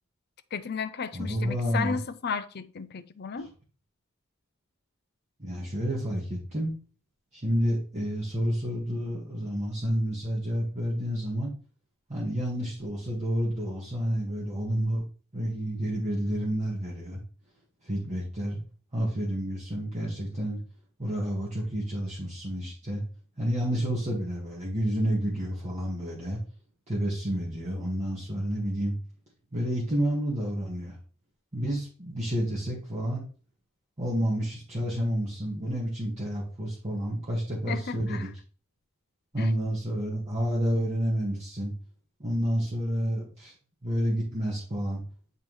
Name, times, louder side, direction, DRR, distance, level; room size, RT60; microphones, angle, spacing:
voice 1, 0.5-3.5 37.7-38.3 39.4-39.5, left 6 dB, 50° left, 0.5 m, -34 dB
voice 2, 1.1-2.0 5.4-6.7 7.3-11.5 12.1-15.0 15.3-17.2 17.8-18.6 18.9-20.6 21.0-23.0 23.4-26.4 26.9-28.9 29.5-30.9 31.5-33.3 34.0-38.3 39.3-41.7 42.2-43.5 43.8-45.0, equal, 35° right, 1.6 m, -29 dB
9.6 x 3.7 x 3.1 m
head